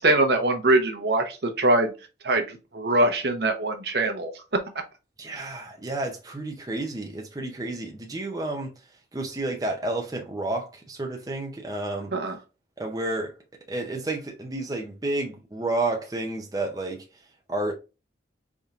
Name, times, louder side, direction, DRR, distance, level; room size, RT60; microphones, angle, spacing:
voice 1, 0.0-4.6 5.3-5.5 12.1-12.4, right 2 dB, 65° right, 0.8 m, -23 dB
voice 2, 5.2-8.7 9.1-12.1 12.8-13.4 13.7-17.0 17.5-17.7, right 2 dB, 20° right, 0.6 m, -30 dB
4.1 x 3.5 x 2.4 m
head